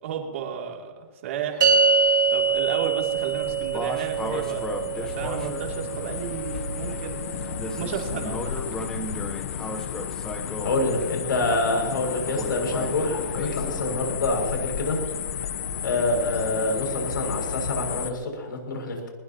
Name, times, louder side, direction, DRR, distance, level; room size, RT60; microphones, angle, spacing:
voice 1, 0.0-4.7 5.0-7.2 7.7-8.7, right 8 dB, 40° right, 1 dB, 2.8 m, -33 dB
sound 1, 1.6-8.1, right 5 dB, 75° right, 3.5 m, -25 dB
sound 2, 1.9-18.1, left 7 dB, 45° left, 0.9 m, -33 dB
sound 3, 3.1-14.0, left 1 dB, 5° left, 0.8 m, -37 dB
voice 2, 10.6-15.0 15.8-19.0, left 2 dB, 85° left, 2 dB, 6.5 m, -26 dB
20.5 x 20.5 x 3.0 m, 1.4 s
hypercardioid pair, 175°, 11 cm